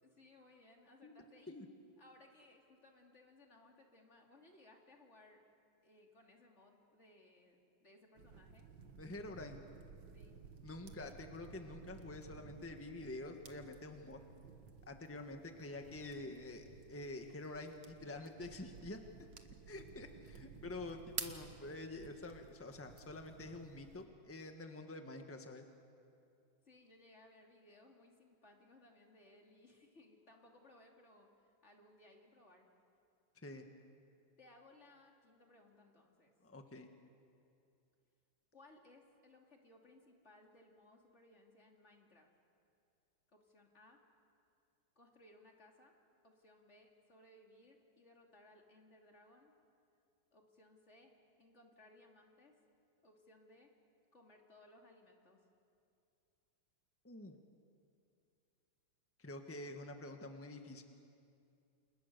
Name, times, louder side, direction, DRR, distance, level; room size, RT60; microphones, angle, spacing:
voice 1, 0.0-1.6 2.0-5.4 5.8-8.6 10.1-10.4 26.6-32.7 34.4-36.3 38.5-42.3 43.3-44.0 44.9-45.9 46.2-49.5 50.3-51.1 51.4-52.6 53.0-53.7 54.1-55.4, left 2 dB, 35° left, 1 dB, 3.1 m, -63 dB
sound 1, 8.2-24.0, right 6 dB, 75° right, 2.1 m, -53 dB
voice 2, 9.0-9.6 10.6-14.2 14.9-19.0 19.7-25.6 33.4-33.6 36.4-36.9 57.0-57.3 59.2-60.8, left 2 dB, 10° left, 5 dB, 1.4 m, -47 dB
29.5 x 28.5 x 6.8 m, 2.5 s
omnidirectional pair, 2.0 m